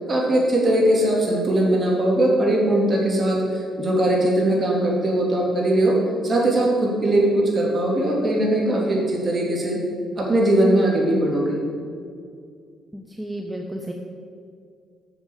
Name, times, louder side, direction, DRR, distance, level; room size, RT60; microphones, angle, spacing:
voice 1, 0.1-6.0 6.2-9.8 10.2-11.6, right 1 dB, 40° right, -2 dB, 3.0 m, -20 dB
voice 2, 12.9-13.9, right 1 dB, 10° right, 1 dB, 0.9 m, -32 dB
7.2 x 7.1 x 8.1 m, 2.2 s
cardioid pair, 90°, 0 cm